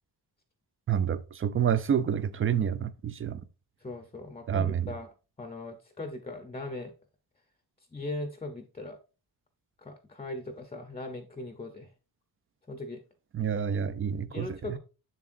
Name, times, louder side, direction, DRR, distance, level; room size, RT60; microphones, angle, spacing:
voice 1, 0.9-3.4 4.5-4.9 13.3-14.8, right 8 dB, 30° right, 0.5 m, -28 dB
voice 2, 3.8-5.1 5.4-6.9 7.9-9.0 9.8-11.9 12.7-13.0 14.3-14.8, left 2 dB, 15° left, 0.7 m, -39 dB
7.3 x 7.0 x 2.6 m
cardioid pair, 120°, 40 cm